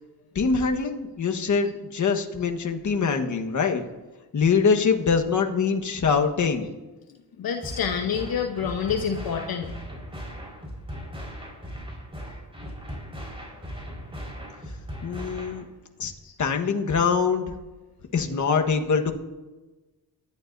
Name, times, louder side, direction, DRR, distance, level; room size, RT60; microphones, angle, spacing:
voice 1, 0.3-3.9 4.3-6.7 15.0-15.7 16.0-16.1 16.4-17.5 18.1-19.1, left 5 dB, 50° left, 4 dB, 1.4 m, -24 dB
voice 2, 7.4-9.7 16.2-16.3, left 7 dB, 70° left, 4 dB, 1.0 m, -28 dB
sound 1, 7.6-15.6, equal, 15° right, 4.6 m, -38 dB
24.0 x 12.0 x 2.7 m, 1.2 s
cardioid pair, 90°, 37 cm